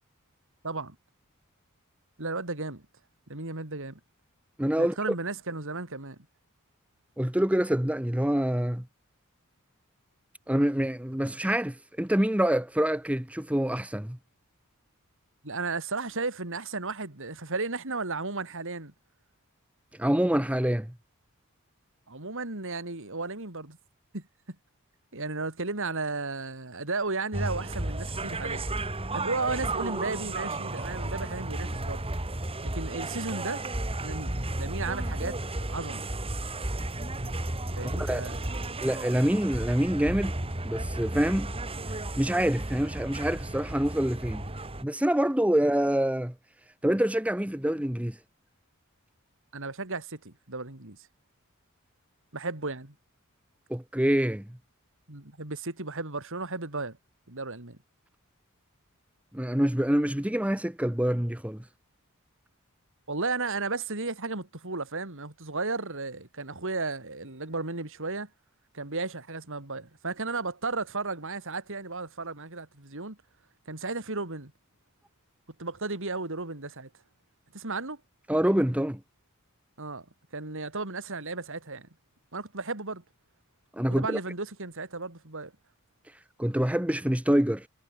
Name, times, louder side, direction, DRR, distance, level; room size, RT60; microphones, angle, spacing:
voice 1, 0.6-1.0 2.2-2.8 3.3-4.0 4.8-6.2 15.4-18.9 22.1-23.8 24.1-24.2 25.1-28.6 29.1-32.1 32.6-33.6 34.0-35.4 35.7-36.1 37.7-38.5 49.5-51.0 52.3-52.9 55.1-57.0 57.3-57.8 63.1-68.3 68.7-73.2 73.7-74.5 75.6-76.9 77.5-78.0 79.8-80.0 80.3-81.9 82.3-83.0 83.9-85.5, right 3 dB, 65° right, 3.4 m, -34 dB
voice 2, 4.6-4.9 7.2-8.8 10.5-14.2 20.0-20.9 38.0-38.2 38.8-40.3 40.6-41.5 42.2-44.4 44.8-46.3 46.8-48.2 53.7-54.4 59.3-61.6 78.3-79.0 83.8-84.2 86.4-87.7, equal, 5° right, 1.1 m, -26 dB
sound 1, 27.3-44.8, right 2 dB, 25° right, 2.3 m, -33 dB
head